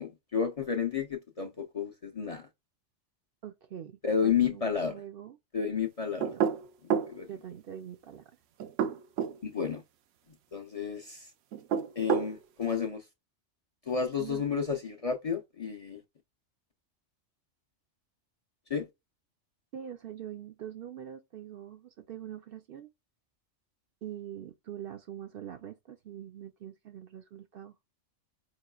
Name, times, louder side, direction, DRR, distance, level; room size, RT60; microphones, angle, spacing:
voice 1, 0.0-2.5 4.0-5.0 5.5-6.4 7.1-7.3 9.4-9.8 10.5-11.3 12.0-13.0 13.9-16.0 18.7-18.9, left 6 dB, 40° left, 0.6 m, -31 dB
voice 2, 3.4-5.4 6.3-6.5 7.3-8.2 14.2-14.4 19.7-22.9 24.0-27.7, right 10 dB, 60° right, 0.6 m, -44 dB
sound 1, 6.2-7.1 8.6-9.4 11.5-12.3, right 8 dB, 85° right, 0.9 m, -28 dB
4.6 x 3.0 x 2.3 m
omnidirectional pair, 1.2 m